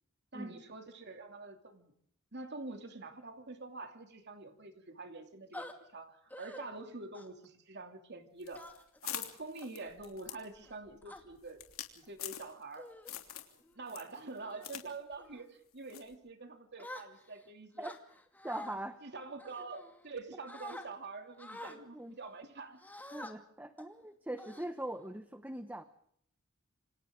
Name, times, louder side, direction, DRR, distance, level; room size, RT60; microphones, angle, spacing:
voice 1, 0.3-1.9 2.3-5.7 5.9-8.7 9.0-11.6 11.9-12.9 13.7-17.9 19.0-22.8 23.2-23.3, right 3 dB, 55° right, 5 dB, 2.9 m, -46 dB
sound 1, 5.5-5.7 6.3-6.6 7.1-7.5 8.5-9.0 9.6-9.9 10.6-11.2 12.0-12.2 12.8-13.1 13.6-13.9 14.3-14.7 15.2-15.5 16.8-17.4 17.8-18.8 19.4-20.2 20.5-20.9 21.4-21.8 22.8-23.3 23.8-23.9 24.4-25.1, left 1 dB, 10° left, 2.5 m, -48 dB
sound 2, 8.4-12.8 13.1-13.6 13.9-14.9 15.1-15.2 15.9-16.1, left 12 dB, 75° left, 3.2 m, -44 dB
voice 2, 18.4-19.0 21.9-22.2 23.1-25.8, right 1 dB, 10° right, 9 dB, 1.0 m, -41 dB
28.5 x 26.5 x 3.8 m, 0.67 s
head